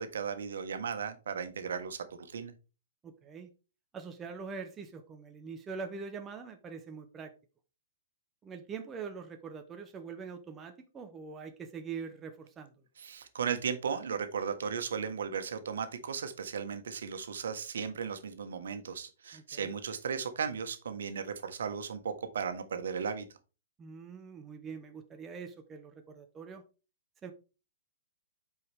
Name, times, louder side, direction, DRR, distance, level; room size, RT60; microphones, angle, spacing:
voice 1, 0.0-2.5 13.0-23.2, right 6 dB, 80° right, 1.3 m, -36 dB
voice 2, 3.0-3.5 3.9-7.3 8.4-12.7 19.3-19.7 23.8-26.6 27.2-27.3, right 5 dB, 10° right, 0.5 m, -43 dB
8.2 x 4.7 x 3.4 m
hypercardioid pair, 175°, 0 cm